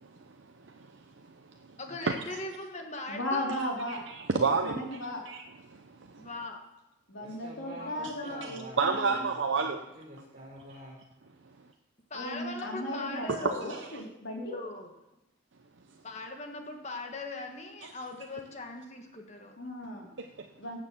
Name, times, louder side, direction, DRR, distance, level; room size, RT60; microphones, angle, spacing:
voice 1, 0.6-1.0 2.1-2.2 3.9-6.3 8.4-9.8 13.3-13.9 17.8-17.9 20.2-20.5, right 4 dB, 75° right, 5 dB, 0.7 m, -31 dB
voice 2, 1.8-3.5 6.2-6.6 7.7-8.7 12.1-13.8 14.4-14.9 16.0-19.5, left 2 dB, 35° left, 3 dB, 1.5 m, -40 dB
voice 3, 3.1-4.0 4.6-5.2 7.1-9.2 12.1-14.6 19.6-20.1 20.6-20.8, left 1 dB, 85° left, -1 dB, 3.5 m, -36 dB
voice 4, 7.2-9.3 9.6-9.7 9.9-11.0, right 1 dB, 40° right, -5 dB, 4.4 m, -47 dB
18.0 x 6.7 x 7.4 m, 0.93 s
head